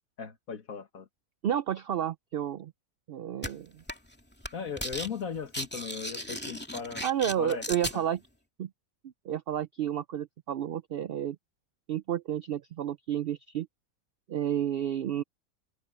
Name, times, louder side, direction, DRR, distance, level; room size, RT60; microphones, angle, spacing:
voice 1, 0.2-1.1 4.5-7.0 7.4-7.6 7.9-8.0, left 6 dB, 70° left, 2.2 m, -37 dB
voice 2, 1.4-2.7 3.1-3.8 7.0-8.2 8.6-8.7 9.0-11.4 11.9-13.7 14.3-15.2, right 10 dB, 75° right, 0.5 m, -31 dB
sound 1, 3.4-3.5 3.9-4.1 4.4-5.1 5.4-8.0, equal, 5° left, 2.4 m, -36 dB
omnidirectional pair, 1.5 m